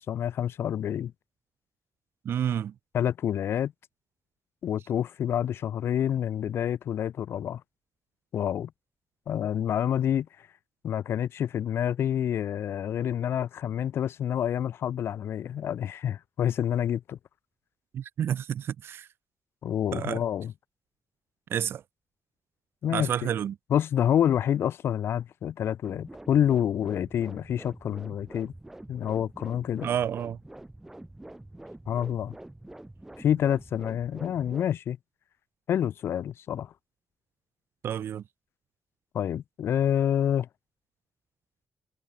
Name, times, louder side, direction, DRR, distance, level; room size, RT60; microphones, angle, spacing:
voice 1, 0.1-1.1 2.9-3.7 4.6-7.6 8.3-8.7 9.3-10.3 10.8-17.2 19.6-20.5 22.8-23.3 23.7-28.5 28.9-29.9 31.9-32.3 33.2-35.0 35.7-36.7 39.1-40.5, left 10 dB, 80° left, 2.4 m, -28 dB
voice 2, 2.3-2.7 17.9-19.1 19.9-20.2 21.5-21.8 22.9-23.6 29.8-30.4 37.8-38.2, right 9 dB, 75° right, 1.8 m, -29 dB
sound 1, 25.8-34.7, right 1 dB, 10° right, 6.8 m, -46 dB
wide cardioid pair, 165°, 4 cm